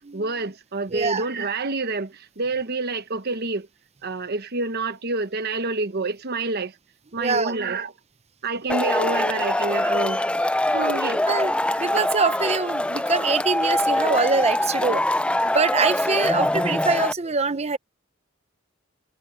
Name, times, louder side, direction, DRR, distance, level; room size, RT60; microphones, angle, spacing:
voice 1, 0.1-3.7 4.0-6.7 7.1-7.9 8.4-10.2 10.7-11.2 11.6-11.8, right 3 dB, 55° right, 1.2 m, -28 dB
voice 2, 0.9-1.2 7.2-7.6 11.3-11.5 11.8-15.1 15.4-17.8, right 4 dB, 35° right, 0.9 m, -24 dB
Male speech man speaking / Shout / Clapping, 8.7-17.1, left 1 dB, 5° left, 0.5 m, -23 dB
head